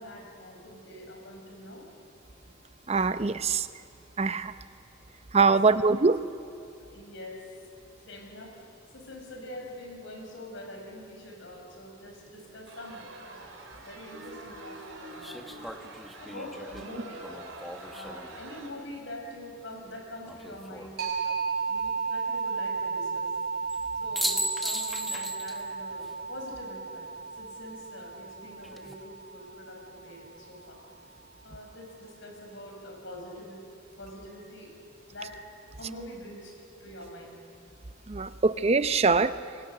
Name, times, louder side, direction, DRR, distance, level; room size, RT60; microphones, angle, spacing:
voice 1, 0.0-1.9 5.5-5.8 6.8-7.4 8.1-8.7 8.9-13.5 13.7-15.6 16.2-17.3 17.9-21.4 21.7-23.3 24.0-27.1 27.4-30.8 31.4-33.6 34.0-34.7 35.1-35.4 35.8-37.4, left 1 dB, 65° left, 2 dB, 5.5 m, -44 dB
voice 2, 2.9-3.7 4.2-4.5 5.3-6.2 38.1-39.3, right 4 dB, 30° right, 12 dB, 0.6 m, -23 dB
sound 1, 12.7-18.7, right 2 dB, 80° right, 3.9 m, -46 dB
sound 2, 13.7-13.8 15.2-18.4 20.3-20.9 23.7-23.8 24.2-25.7 26.0-26.1 28.4-28.9, equal, ahead, 1.2 m, -36 dB
sound 3, 21.0-30.4, right 5 dB, 50° right, 5.5 m, -34 dB
29.0 x 23.5 x 6.7 m, 2.6 s
head